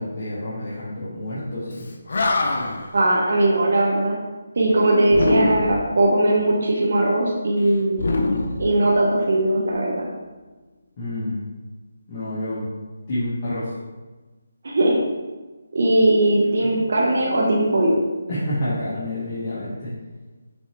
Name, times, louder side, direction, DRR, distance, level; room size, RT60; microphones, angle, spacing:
voice 1, 0.0-1.8 11.0-11.4 12.1-12.7 13.1-13.7 16.6-16.8 18.3-19.9, left 1 dB, 30° left, -11 dB, 1.5 m, -28 dB
Animal, 1.8-1.9 2.1-2.9 5.1-5.9 7.9-9.3, left 2 dB, 60° left, 0.7 m, -23 dB
voice 2, 2.9-4.2 4.6-8.0 8.6-10.1 14.6-15.0 15.7-17.9, right 1 dB, 60° right, -4 dB, 1.0 m, -19 dB
6.3 x 4.6 x 3.2 m, 1.2 s
hypercardioid pair, 170°, 0 cm